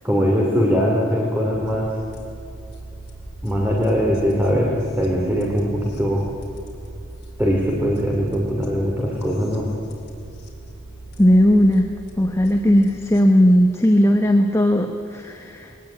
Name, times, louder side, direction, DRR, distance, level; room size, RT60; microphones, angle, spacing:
voice 1, 0.0-1.9 3.4-6.3 7.4-9.7, equal, 10° right, -2 dB, 2.7 m, -21 dB
sound 1, 1.5-13.2, right 2 dB, 50° left, 4.0 m, -40 dB
voice 2, 11.2-11.9 12.2-15.9, equal, 15° left, 4 dB, 1.0 m, -17 dB
21.5 x 19.0 x 8.7 m, 2.9 s
head